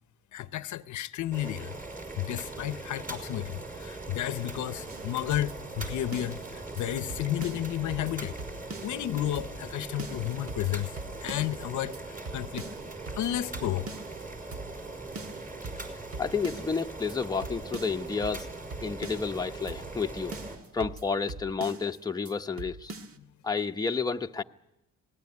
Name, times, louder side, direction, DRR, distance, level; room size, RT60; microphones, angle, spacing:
voice 1, 0.3-1.7 2.2-8.3 8.8-10.9 11.2-12.7 13.1-13.9, left 13 dB, 70° left, 0.9 m, -32 dB
Boiling, 1.3-20.6, right 2 dB, 25° right, 5.5 m, -41 dB
sound 1, 4.9-6.5 6.8-6.9 7.1-9.1 9.3-9.7 10.0-11.6 11.9-12.0 12.2-14.2 14.5-14.9 15.1-16.8 17.1-17.2 17.4-19.4 19.7-20.0 20.3-22.0 22.2-22.3 22.6-23.2, right 3 dB, 50° right, 1.6 m, -42 dB
voice 2, 16.2-18.5 18.8-20.4 20.7-22.9 23.4-24.4, left 5 dB, 15° left, 0.9 m, -30 dB
26.0 x 19.0 x 9.7 m
cardioid pair, 90°, 30 cm